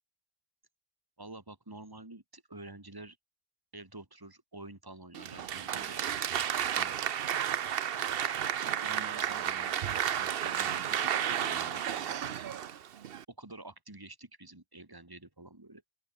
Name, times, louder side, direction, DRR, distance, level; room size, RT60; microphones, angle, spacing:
voice 1, 1.2-3.2 3.7-6.0 6.6-7.0 8.6-9.8 10.1-12.4 13.3-15.8, right 2 dB, 20° right, 2.4 m, -48 dB
Applause, 5.1-13.2, right 9 dB, 70° right, 0.9 m, -32 dB
open air
omnidirectional pair, 1.0 m